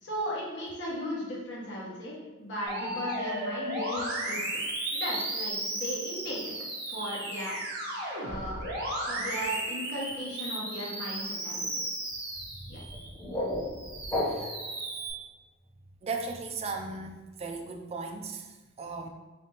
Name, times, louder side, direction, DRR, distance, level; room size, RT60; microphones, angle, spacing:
voice 1, 0.0-4.4 4.9-6.5 6.9-7.6 8.2-8.6 9.0-11.8 12.7-12.8, equal, 55° left, -5 dB, 1.1 m, -36 dB
Musical instrument, 2.7-13.1 13.5-15.1, right 1 dB, 50° right, 1.1 m, -35 dB
voice 2, 12.5-12.9 14.2-14.6 16.0-19.1, right 3 dB, 30° right, 3 dB, 0.3 m, -38 dB
sound 1, 12.8-14.8, left 1 dB, 15° left, 0.7 m, -33 dB
3.4 x 3.3 x 2.9 m, 1.2 s
head